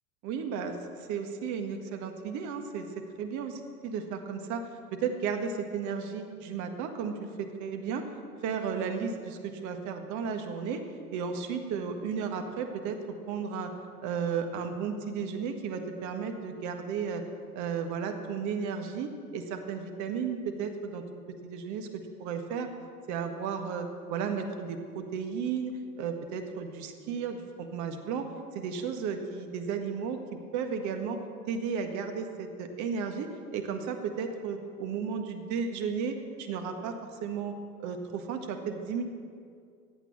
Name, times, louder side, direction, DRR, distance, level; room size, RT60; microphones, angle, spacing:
voice 1, 0.2-2.9 3.2-8.0 8.4-10.8 11.1-13.0 13.3-13.7 14.0-17.2 17.5-21.0 21.4-22.7 23.1-28.3 28.5-30.2 30.5-31.2 31.5-36.9 37.2-37.5 37.8-39.0, right 6 dB, 40° right, 6 dB, 1.7 m, -34 dB
15.5 x 9.0 x 7.3 m, 2.3 s
figure-of-eight pair, 80°, 45 cm